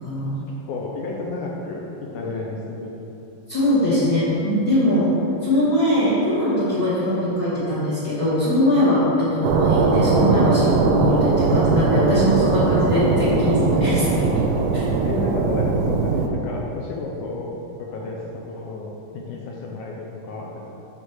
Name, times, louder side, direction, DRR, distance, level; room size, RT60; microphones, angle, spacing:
voice 1, 0.2-2.9 12.1-12.5 13.8-13.9 15.0-18.2 18.5-20.7, left 3 dB, 80° left, -2 dB, 1.8 m, -32 dB
voice 2, 3.5-5.1 5.4-14.0 14.7-14.8, left 1 dB, 55° left, -10 dB, 1.1 m, -21 dB
sound 1, 9.4-16.3, right 4 dB, 90° right, 2.5 m, -20 dB
8.0 x 3.9 x 6.2 m, 3.0 s
omnidirectional pair, 4.2 m